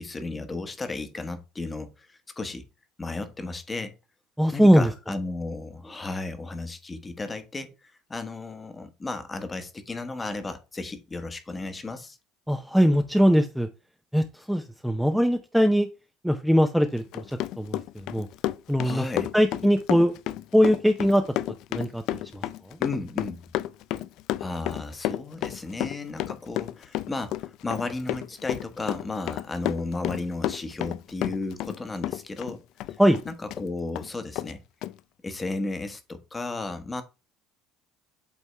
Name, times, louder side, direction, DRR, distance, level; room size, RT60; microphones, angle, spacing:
voice 1, 0.0-2.7 3.0-3.9 4.5-7.7 8.1-12.2 18.8-19.3 22.8-23.4 24.4-32.6 33.2-34.6 35.2-37.0, left 3 dB, 20° left, 1.1 m, -34 dB
voice 2, 4.4-4.9 12.5-13.7 14.1-15.9 16.2-18.3 18.7-19.0 19.3-20.1 20.5-21.2 21.7-22.4 22.7-22.8 33.0-33.2, equal, ahead, 0.6 m, -21 dB
Run, 17.0-33.6 34.0-34.1 34.4-34.5 34.8-34.9, left 14 dB, 65° left, 0.4 m, -31 dB
8.3 x 3.5 x 3.3 m
supercardioid pair, 110°, 0 cm